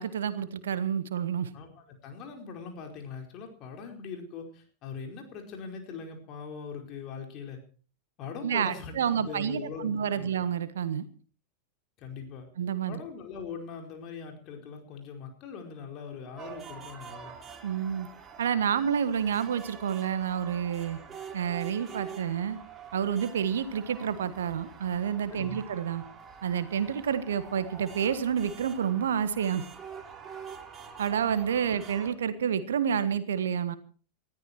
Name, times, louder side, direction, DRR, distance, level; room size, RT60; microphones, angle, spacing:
voice 1, 0.0-1.5 8.4-11.1 12.6-13.0 17.6-18.1 18.4-21.0 21.3-22.6 22.9-26.0 26.4-29.6 31.0-33.8, right 8 dB, 65° right, 13 dB, 1.4 m, -29 dB
voice 2, 1.5-7.6 8.2-10.3 12.0-12.5 12.9-17.3 25.3-25.6, left 5 dB, 35° left, 3 dB, 4.8 m, -41 dB
sound 1, 16.4-32.1, right 6 dB, 20° right, 2.9 m, -46 dB
20.0 x 14.0 x 4.6 m, 0.40 s
figure-of-eight pair, 90°, 0 cm